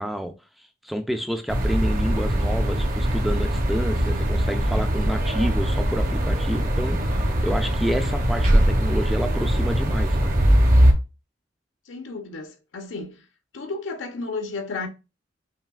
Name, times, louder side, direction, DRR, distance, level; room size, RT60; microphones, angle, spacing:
voice 1, 0.0-10.4, equal, ahead, 0.3 m, -29 dB
sound 1, 1.5-10.9, equal, 45° right, 0.7 m, -21 dB
voice 2, 11.9-13.2 13.5-14.9, left 3 dB, 75° left, 0.7 m, -33 dB
5.5 x 2.7 x 2.3 m
head